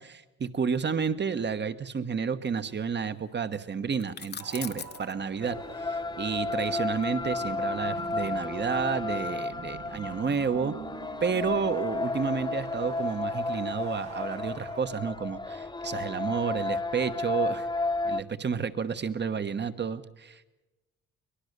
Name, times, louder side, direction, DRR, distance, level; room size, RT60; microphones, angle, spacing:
voice 1, 0.0-10.8 11.2-17.7 18.0-20.4, right 6 dB, 35° right, 11 dB, 1.2 m, -31 dB
sound 1, 4.0-5.1 7.0-8.5, left 6 dB, 35° left, 0.9 m, -42 dB
sound 2, 4.4-14.8, right 6 dB, 60° right, 2.1 m, -46 dB
sound 3, 5.4-18.2, left 3 dB, 15° left, 1.1 m, -32 dB
23.0 x 19.5 x 6.7 m, 1.0 s
cardioid pair, 90°, 30 cm